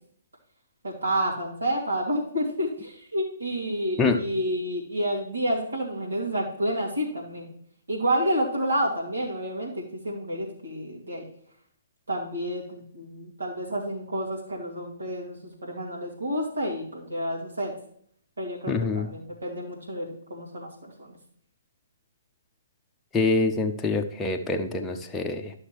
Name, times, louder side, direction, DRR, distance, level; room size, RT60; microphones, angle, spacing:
voice 1, 0.8-7.5 7.9-11.2 12.1-17.7 18.4-21.2, equal, 75° right, -4 dB, 2.6 m, -29 dB
voice 2, 18.7-19.1 23.1-25.5, left 3 dB, 10° left, 2 dB, 0.8 m, -25 dB
11.5 x 6.5 x 3.1 m, 0.64 s
figure-of-eight pair, 125°, 0 cm